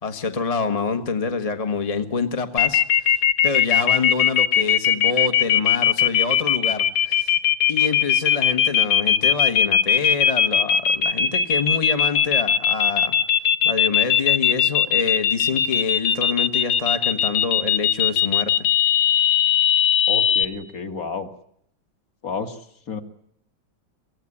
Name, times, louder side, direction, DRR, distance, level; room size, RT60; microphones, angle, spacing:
voice 1, 0.0-7.4 7.7-13.1 13.6-18.5, left 4 dB, 20° left, 7 dB, 1.0 m, -27 dB
sound 1, 2.6-20.4, left 9 dB, 85° left, 2.1 m, -19 dB
voice 2, 20.1-21.3 22.2-22.6 22.9-23.0, left 5 dB, 45° left, 6 dB, 2.3 m, -30 dB
24.5 x 17.0 x 9.8 m, 0.70 s
omnidirectional pair, 2.2 m